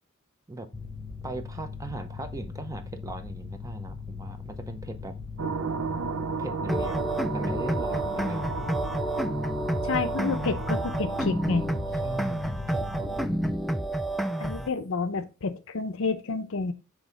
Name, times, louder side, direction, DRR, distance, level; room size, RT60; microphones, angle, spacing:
Mechanical fan, 0.7-13.5, left 5 dB, 25° left, 1.0 m, -40 dB
voice 1, 1.2-5.2 6.4-8.9 12.0-13.5, right 2 dB, 15° right, 0.7 m, -39 dB
sound 1, 5.4-12.0, right 5 dB, 75° right, 0.5 m, -34 dB
sound 2, 6.7-14.7, right 1 dB, ahead, 0.3 m, -29 dB
voice 2, 9.8-11.6 14.4-16.7, left 4 dB, 65° left, 0.7 m, -29 dB
6.2 x 3.5 x 5.2 m
head